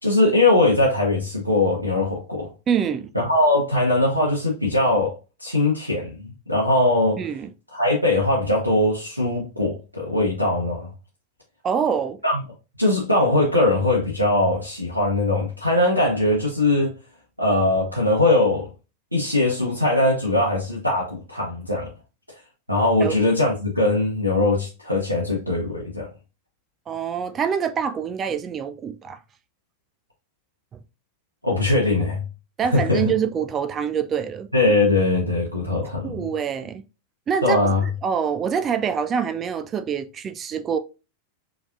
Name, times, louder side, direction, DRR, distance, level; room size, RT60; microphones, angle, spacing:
voice 1, 0.0-2.5 3.2-7.2 7.7-10.9 12.2-12.4 12.8-17.0 17.4-18.7 19.1-21.9 22.7-26.1 31.4-32.2 32.7-33.1 34.5-36.3 37.4-37.8, left 2 dB, 90° right, 1.1 m, -21 dB
voice 2, 2.7-3.1 7.2-7.5 11.6-12.2 23.0-23.1 26.9-29.2 32.6-34.5 36.0-36.8 37.3-37.6 37.8-40.8, right 7 dB, 25° right, 0.4 m, -25 dB
4.8 x 3.3 x 2.6 m
figure-of-eight pair, 90°, 0 cm